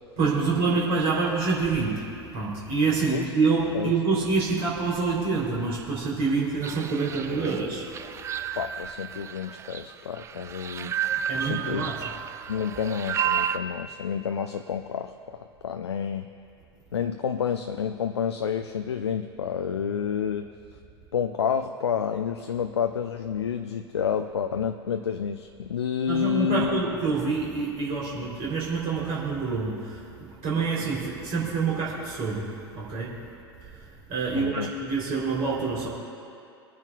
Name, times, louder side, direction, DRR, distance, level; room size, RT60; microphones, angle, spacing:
voice 1, 0.2-7.9 11.3-12.0 26.1-33.2 33.7-33.8 34.1-35.9, right 4 dB, 45° right, -5 dB, 3.3 m, -27 dB
sound 1, 6.6-13.6, right 9 dB, 20° right, 0.4 m, -32 dB
voice 2, 8.5-10.9 11.4-11.9 12.5-15.4 15.6-16.3 16.9-20.5 21.1-26.9 34.3-34.7, left 7 dB, 75° left, 7 dB, 0.5 m, -29 dB
25.0 x 9.3 x 2.4 m, 2.5 s
figure-of-eight pair, 85°, 14 cm